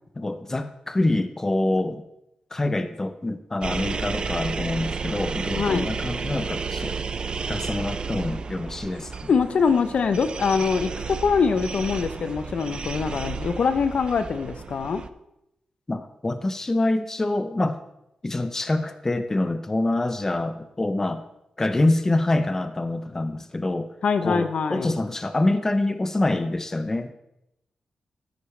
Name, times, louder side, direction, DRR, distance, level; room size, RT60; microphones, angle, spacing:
voice 1, 0.2-2.0 2.5-6.9 7.5-9.3 15.9-17.8 18.2-21.2 21.6-23.9 24.2-27.1, left 2 dB, 20° left, 10 dB, 0.7 m, -25 dB
sound 1, 3.6-15.1, right 5 dB, 45° right, 0.5 m, -32 dB
voice 2, 5.5-5.9 9.3-15.0 24.0-24.9, left 5 dB, 65° left, 10 dB, 0.7 m, -23 dB
13.0 x 10.0 x 3.3 m, 0.84 s
wide cardioid pair, 115°, 2 cm